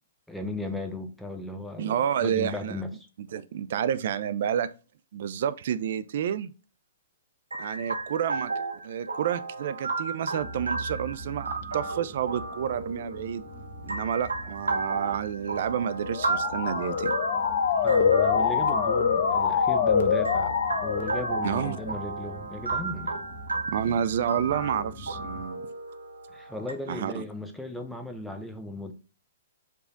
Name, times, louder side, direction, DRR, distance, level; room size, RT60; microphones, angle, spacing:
voice 1, 0.3-3.1 14.4-14.5 17.8-20.5 20.8-23.2 23.9-24.0 26.3-28.9, left 1 dB, ahead, 0.5 m, -36 dB
voice 2, 1.8-2.8 3.3-4.7 5.1-6.5 7.6-13.4 13.8-17.1 21.4-21.8 23.7-25.7 26.9-27.2, right 9 dB, 55° right, 0.3 m, -29 dB
sound 1, 7.5-26.7, right 3 dB, 90° right, 0.7 m, -34 dB
sound 2, 10.4-25.4, equal, 35° left, 1.0 m, -43 dB
Motor vehicle (road) / Siren, 16.0-21.9, left 6 dB, 55° left, 0.5 m, -25 dB
4.9 x 2.4 x 3.8 m
figure-of-eight pair, 120°, 0 cm